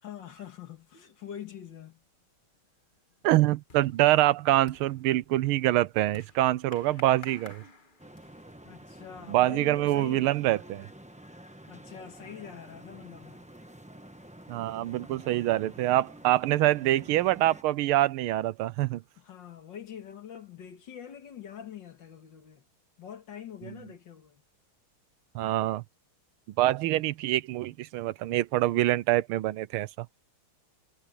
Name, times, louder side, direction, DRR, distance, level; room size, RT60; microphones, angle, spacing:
voice 1, 0.0-2.0 8.6-10.3 11.7-13.5 19.2-22.6 23.0-24.4, left 9 dB, 60° left, 2.3 m, -44 dB
sound 1, 2.1-2.4 2.8-8.6, left 4 dB, 25° left, 1.4 m, -53 dB
voice 2, 3.2-7.6 9.3-10.9 14.5-19.0 25.3-25.8 26.6-30.1, right 15 dB, 85° right, 1.5 m, -25 dB
sound 2, 8.0-17.6, right 1 dB, 5° right, 0.7 m, -49 dB
omnidirectional pair, 2.3 m